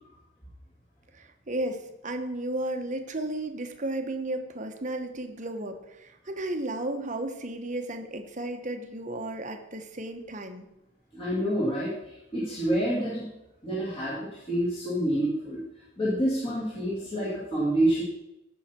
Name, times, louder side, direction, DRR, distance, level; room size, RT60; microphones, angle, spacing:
voice 1, 1.1-10.7, right 1 dB, 35° right, 6 dB, 1.0 m, -34 dB
voice 2, 11.1-13.3 13.6-15.6 16.0-18.0, right 1 dB, 25° left, -7 dB, 2.3 m, -28 dB
15.0 x 5.7 x 4.3 m, 0.90 s
head